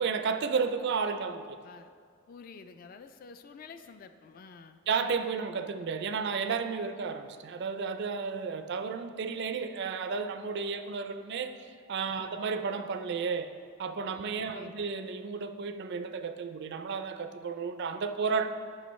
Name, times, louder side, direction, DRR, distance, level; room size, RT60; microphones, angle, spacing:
voice 1, 0.0-1.6 4.9-13.5 13.8-18.5, right 5 dB, 50° right, 9 dB, 0.4 m, -32 dB
voice 2, 2.3-4.8 12.1-12.4 14.2-14.9, left 5 dB, 40° left, 9 dB, 0.3 m, -50 dB
10.5 x 5.7 x 3.1 m, 2.1 s
head